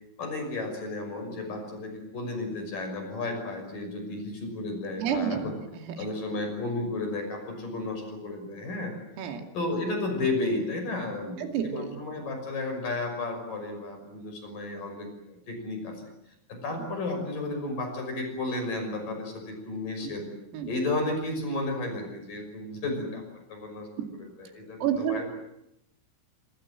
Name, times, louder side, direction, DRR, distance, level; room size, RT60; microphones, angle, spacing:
voice 1, 0.2-5.5 6.0-8.9 9.5-16.0 16.5-20.3 20.7-23.2 23.5-23.9 24.4-25.3, left 2 dB, 40° left, 5 dB, 7.4 m, -33 dB
voice 2, 5.0-6.1 9.2-9.5 11.4-12.0 20.5-20.7 24.0-24.1 24.8-25.3, right 9 dB, 85° right, 4 dB, 5.2 m, -30 dB
26.0 x 25.5 x 7.6 m, 0.83 s
omnidirectional pair, 5.9 m